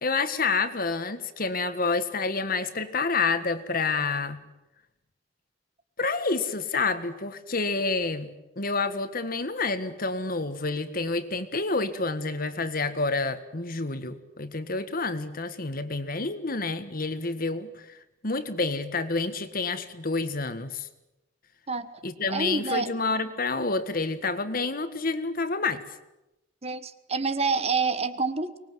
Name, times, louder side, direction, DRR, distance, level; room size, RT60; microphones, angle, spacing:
voice 1, 0.0-4.4 6.0-18.0 18.2-20.9 22.0-25.8, left 3 dB, 50° left, 10 dB, 1.7 m, -28 dB
voice 2, 22.3-22.9 26.6-28.6, right 4 dB, 35° right, 12 dB, 1.3 m, -27 dB
24.5 x 20.5 x 9.4 m, 0.97 s
head